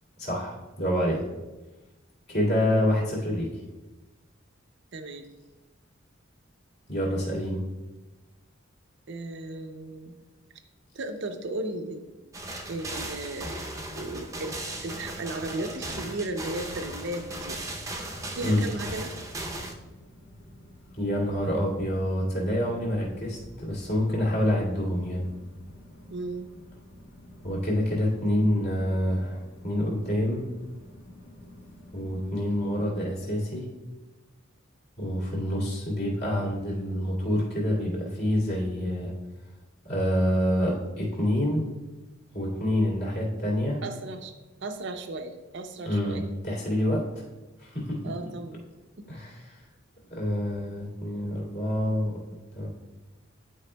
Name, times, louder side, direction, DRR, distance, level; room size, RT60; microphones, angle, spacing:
voice 1, 0.2-1.2 2.3-3.5 6.9-7.6 18.4-18.6 21.0-25.3 27.4-30.5 31.9-33.7 35.0-39.1 39.8-41.6 42.3-43.8 45.8-47.2 47.6-48.1 49.1-49.6 50.1-52.2 52.6-52.7, left 1 dB, 55° left, -5 dB, 2.3 m, -27 dB
voice 2, 4.9-5.3 9.1-10.1 10.9-12.0 12.7-13.6 13.9-17.6 18.3-19.1 26.1-26.5 43.8-44.3 44.6-46.3 48.0-48.6 49.0-49.1, right 2 dB, 60° right, 7 dB, 0.6 m, -35 dB
sound 1, 12.3-19.7, right 1 dB, 15° right, 0.6 m, -37 dB
sound 2, 15.4-32.6, left 1 dB, 85° left, 1.9 m, -50 dB
11.0 x 4.8 x 2.2 m, 1.1 s
head